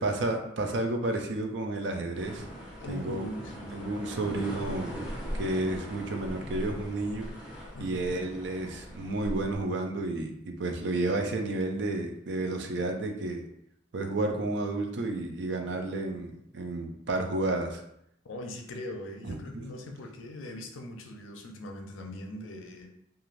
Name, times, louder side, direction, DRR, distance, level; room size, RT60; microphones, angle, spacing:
voice 1, 0.0-2.5 2.9-3.2 3.7-4.9 5.4-7.3 7.8-13.4 13.9-17.8 19.2-19.7, right 2 dB, 60° right, 4 dB, 0.4 m, -31 dB
sound 1, 2.1-9.6, equal, 5° right, 0.8 m, -40 dB
voice 2, 2.8-3.8 5.2-5.4 7.7-8.0 18.2-22.9, left 1 dB, 85° left, 3 dB, 0.5 m, -41 dB
3.1 x 2.3 x 2.4 m, 0.76 s
head